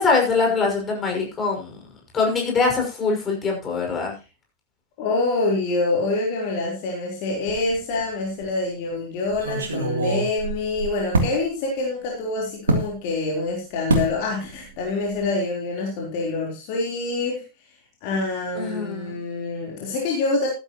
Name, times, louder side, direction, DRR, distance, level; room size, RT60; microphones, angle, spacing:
voice 1, 0.0-1.8 2.1-4.1 18.5-19.2, left 4 dB, 20° left, 1 dB, 6.0 m, -23 dB
voice 2, 5.0-17.4 18.0-20.5, left 3 dB, 45° left, -1 dB, 3.8 m, -26 dB
sound 1, 7.5-8.0 8.4-8.5 9.3-11.4 12.7-12.9 13.9-14.2 14.5-14.8 15.1-15.2, right 2 dB, 70° right, 2.9 m, -25 dB
14.5 x 12.0 x 3.0 m, 0.32 s
figure-of-eight pair, 90°, 0 cm